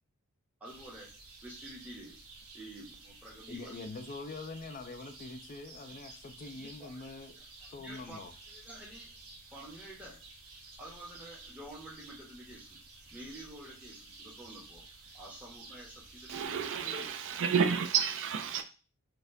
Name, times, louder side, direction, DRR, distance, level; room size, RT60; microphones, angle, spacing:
voice 1, 0.6-2.2 2.5-3.8 5.9-6.0 6.5-7.0 7.4-7.5 7.8-8.2 8.5-9.1 9.5-10.2 10.8-12.8 13.1-14.8 15.1-17.1 18.5-18.6, right 1 dB, 5° right, 0.9 m, -49 dB
sound 1, 0.6-16.5, right 3 dB, 90° right, 0.9 m, -52 dB
voice 2, 3.5-7.3 7.7-8.3, left 3 dB, 40° left, 0.4 m, -44 dB
voice 3, 16.3-18.6, right 7 dB, 60° right, 0.4 m, -30 dB
4.2 x 2.3 x 2.6 m
head